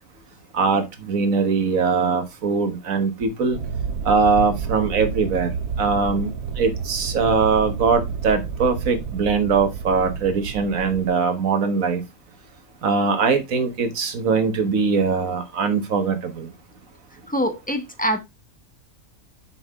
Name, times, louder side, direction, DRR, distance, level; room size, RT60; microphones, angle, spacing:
voice 1, 0.5-3.6 4.0-5.5 5.8-6.3 6.6-12.0 12.8-16.5, right 5 dB, 65° right, 1.7 m, -21 dB
sound 1, 3.5-11.1, right 6 dB, 85° right, 1.2 m, -30 dB
voice 2, 17.3-18.2, equal, 5° left, 1.0 m, -24 dB
7.0 x 5.4 x 3.6 m
omnidirectional pair, 1.5 m